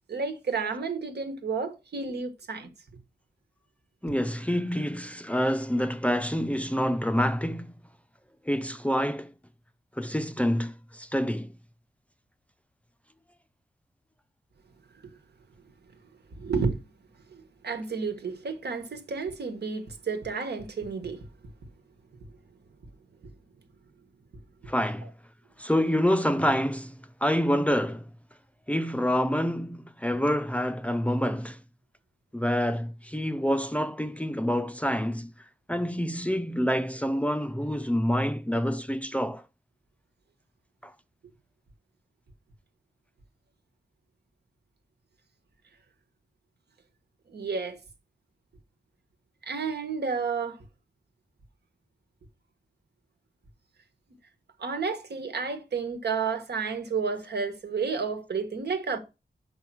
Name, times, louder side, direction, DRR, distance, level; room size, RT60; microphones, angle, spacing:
voice 1, 0.1-2.7 15.0-15.1 16.4-16.9 17.3-21.3 23.2-23.3 24.6-24.7 47.3-47.8 49.4-50.6 54.6-59.0, right 5 dB, 80° right, 1.4 m, -31 dB
voice 2, 4.0-7.7 8.4-9.3 10.0-11.5 24.7-25.1 25.6-26.9 27.2-28.1 28.7-31.6 32.3-35.3 35.7-39.4 40.8-40.9, equal, 10° left, 0.5 m, -27 dB
5.6 x 5.3 x 6.1 m
wide cardioid pair, 130°, 17 cm